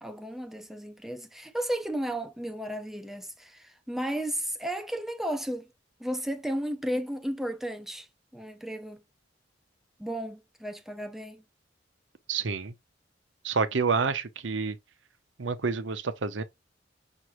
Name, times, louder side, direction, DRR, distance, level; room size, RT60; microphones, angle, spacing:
voice 1, 0.0-5.7 6.0-8.1 8.3-9.0 10.0-11.4, right 1 dB, ahead, 0.5 m, -34 dB
voice 2, 12.3-12.7 13.4-14.8 15.4-16.4, right 5 dB, 70° right, 0.7 m, -28 dB
6.1 x 2.6 x 3.0 m
head